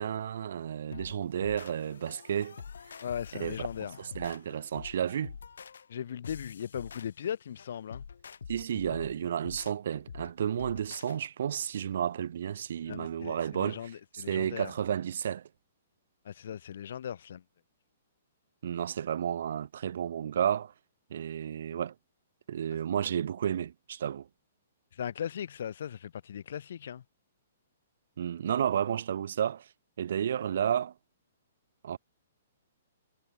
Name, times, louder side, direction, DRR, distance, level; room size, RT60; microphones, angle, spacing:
voice 1, 0.0-2.6 3.4-5.3 8.5-15.5 18.6-20.7 21.1-21.9 22.5-24.3 28.2-29.7 30.0-30.9 31.8-32.0, right 9 dB, 60° right, 0.3 m, -32 dB
sound 1, 0.9-11.2, left 6 dB, 90° left, 2.1 m, -46 dB
voice 2, 3.0-4.0 5.9-8.0 12.9-14.7 16.2-17.4 24.9-27.0, left 9 dB, 65° left, 1.0 m, -38 dB
hypercardioid pair, 160°, 0 cm